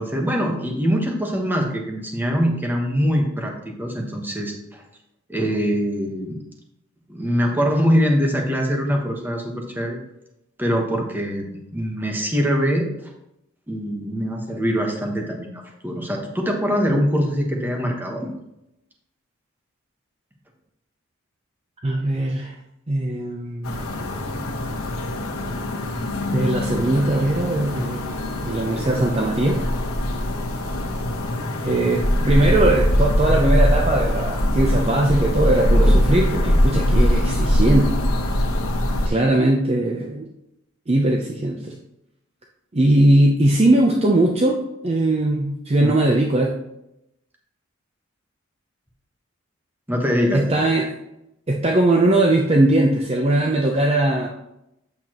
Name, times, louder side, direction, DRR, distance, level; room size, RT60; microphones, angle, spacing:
voice 1, 0.0-4.8 5.3-6.4 7.1-10.0 10.6-13.1 13.7-18.3 45.8-46.1 49.9-50.6, equal, 10° right, 1 dB, 1.2 m, -23 dB
voice 2, 21.8-22.5 22.9-23.8 26.3-28.2 28.4-29.6 31.6-37.9 39.1-40.3 40.9-41.7 42.7-46.5 50.3-50.9 51.5-54.3, right 1 dB, 30° right, 0 dB, 0.6 m, -20 dB
sound 1, 23.6-39.1, left 1 dB, 80° left, 1.4 m, -22 dB
8.3 x 6.9 x 3.0 m, 0.85 s
head